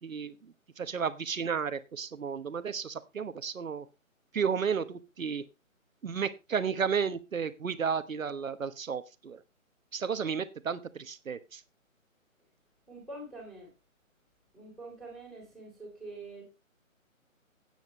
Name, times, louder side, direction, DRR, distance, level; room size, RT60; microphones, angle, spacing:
voice 1, 0.0-3.8 4.3-5.4 6.0-9.4 9.9-11.6, right 6 dB, 70° right, 1.3 m, -33 dB
voice 2, 12.9-13.7 14.5-16.4, right 2 dB, ahead, 3.6 m, -45 dB
13.0 x 9.1 x 3.1 m
figure-of-eight pair, 155°, 42 cm